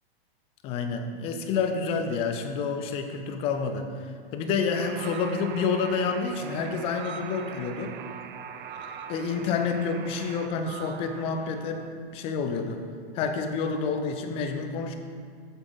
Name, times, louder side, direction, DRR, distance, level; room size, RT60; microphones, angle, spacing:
voice 1, 0.6-8.0 8.6-8.7 9.1-11.8 12.1-12.8 13.1-14.9, left 5 dB, 20° left, 6 dB, 0.4 m, -29 dB
Alarm, 4.7-10.5, right 8 dB, 50° right, 0.5 m, -43 dB
sound 1, 4.8-11.9, right 6 dB, 85° right, 0.8 m, -45 dB
7.2 x 7.1 x 4.0 m, 2.1 s
hypercardioid pair, 140°, 32 cm